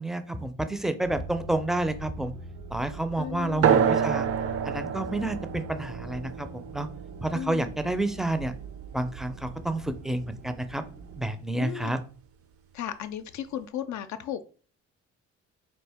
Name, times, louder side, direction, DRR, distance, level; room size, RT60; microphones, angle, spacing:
voice 1, 0.0-2.3 2.7-4.3 4.6-6.9 7.2-8.5 8.9-10.8 11.2-12.0, right 1 dB, ahead, 9 dB, 0.4 m, -29 dB
sound 1, 1.0-11.3, right 3 dB, 85° right, 0.8 m, -43 dB
voice 2, 3.2-3.6 7.3-7.7 11.6-11.9 12.7-14.4, left 10 dB, 70° left, 10 dB, 0.4 m, -35 dB
sound 2, 3.6-8.7, right 7 dB, 50° right, 0.5 m, -28 dB
4.3 x 2.4 x 3.4 m, 0.40 s
cardioid pair, 90°, 30 cm